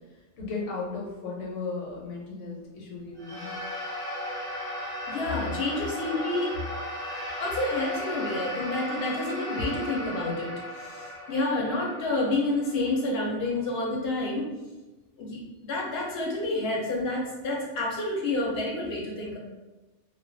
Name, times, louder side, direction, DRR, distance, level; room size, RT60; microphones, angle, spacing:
voice 1, 0.4-3.6, left 4 dB, 85° left, -4 dB, 1.1 m, -35 dB
sound 1, 3.2-13.7, equal, 5° left, 0.6 m, -36 dB
voice 2, 5.1-6.5 7.4-14.5 15.2-19.4, left 2 dB, 65° left, -2 dB, 0.8 m, -29 dB
2.3 x 2.3 x 2.5 m, 1.1 s
omnidirectional pair, 1.2 m